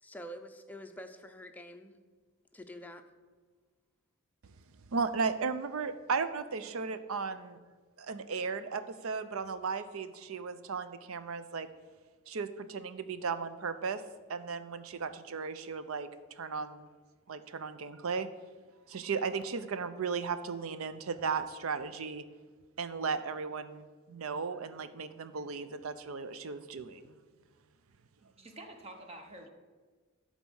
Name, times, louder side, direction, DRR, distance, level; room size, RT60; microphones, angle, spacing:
voice 1, 0.0-2.0 2.5-3.0, equal, 10° left, 5 dB, 0.6 m, -46 dB
voice 2, 4.9-7.6 8.0-11.7 12.3-14.0 14.3-16.1 16.4-16.9 17.3-18.3 18.9-22.2 22.8-27.1, right 5 dB, 80° right, 12 dB, 0.6 m, -35 dB
voice 3, 28.2-29.5, right 1 dB, 30° right, 4 dB, 0.9 m, -48 dB
11.5 x 4.1 x 6.3 m, 1.4 s
head